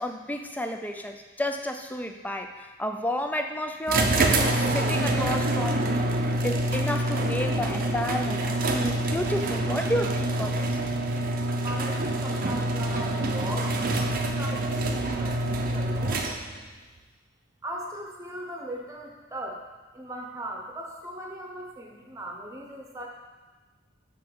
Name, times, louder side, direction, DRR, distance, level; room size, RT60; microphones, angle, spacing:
voice 1, 0.0-10.8, left 1 dB, 10° left, 5 dB, 0.5 m, -31 dB
sound 1, 3.9-16.7, right 1 dB, 45° right, 0.6 m, -26 dB
voice 2, 11.6-16.3 17.6-19.6 19.9-23.1, right 1 dB, 15° right, 0 dB, 1.0 m, -39 dB
6.1 x 5.9 x 4.7 m, 1.2 s
head